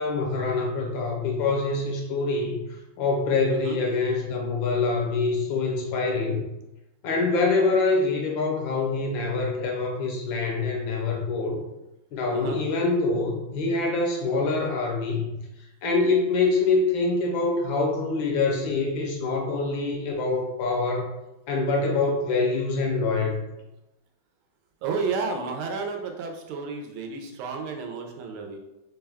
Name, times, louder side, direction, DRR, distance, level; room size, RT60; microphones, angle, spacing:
voice 1, 0.0-2.6 3.0-6.4 7.0-11.6 12.1-15.3 15.8-21.1 21.5-23.4, left 3 dB, 70° left, 0 dB, 1.4 m, -25 dB
voice 2, 24.8-28.6, right 4 dB, 80° right, 3 dB, 1.4 m, -31 dB
4.4 x 2.2 x 3.4 m, 0.93 s
omnidirectional pair, 2.3 m